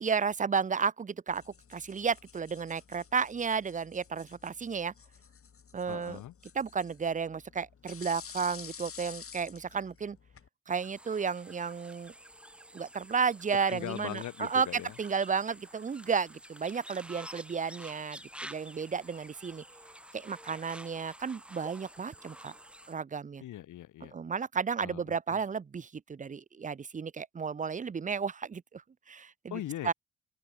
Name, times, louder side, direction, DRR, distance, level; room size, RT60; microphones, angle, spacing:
voice 1, 0.0-4.9 5.7-6.2 6.5-10.2 10.7-12.1 12.7-19.6 20.1-22.5 22.9-23.4 24.1-29.9, right 6 dB, 25° right, 0.7 m, -33 dB
sound 1, 1.3-10.5, left 7 dB, 50° left, 7.7 m, -51 dB
voice 2, 5.9-6.3 13.5-15.0 23.4-24.1 24.8-25.4 29.5-29.9, left 13 dB, 80° left, 3.9 m, -40 dB
sound 2, 10.7-22.9, right 1 dB, 5° right, 2.2 m, -50 dB
open air
cardioid pair, 90°, 30 cm